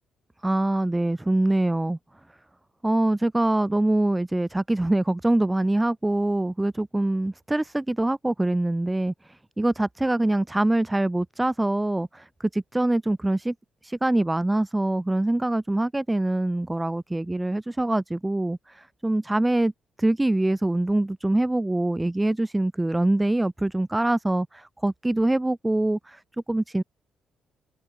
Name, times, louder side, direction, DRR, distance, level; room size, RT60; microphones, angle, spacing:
voice 1, 0.4-2.0 2.8-13.5 13.8-19.7 20.0-26.2 26.5-26.8, right 1 dB, 10° right, 2.0 m, -24 dB
cardioid pair, 90°, 0 cm